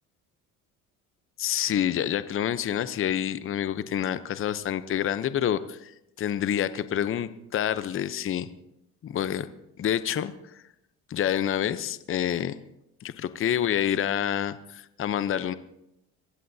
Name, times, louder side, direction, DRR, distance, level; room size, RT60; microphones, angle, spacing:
voice 1, 1.4-8.5 9.0-9.5 9.8-10.6 11.1-12.6 13.0-15.5, left 10 dB, 40° left, 13 dB, 0.7 m, -28 dB
22.5 x 15.5 x 2.8 m, 0.82 s
cardioid pair, 100°, 34 cm